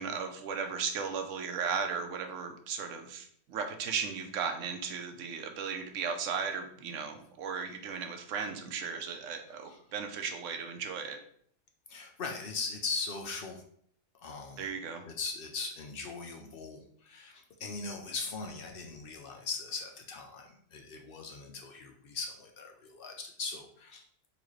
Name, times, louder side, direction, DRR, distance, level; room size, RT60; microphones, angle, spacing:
voice 1, 0.0-11.2 14.6-15.0, right 6 dB, 90° right, 6 dB, 1.0 m, -36 dB
voice 2, 11.9-13.6 14.1-14.7 15.1-24.0, left 4 dB, 60° left, 2 dB, 0.7 m, -39 dB
4.0 x 2.8 x 3.1 m, 0.63 s
omnidirectional pair, 1.2 m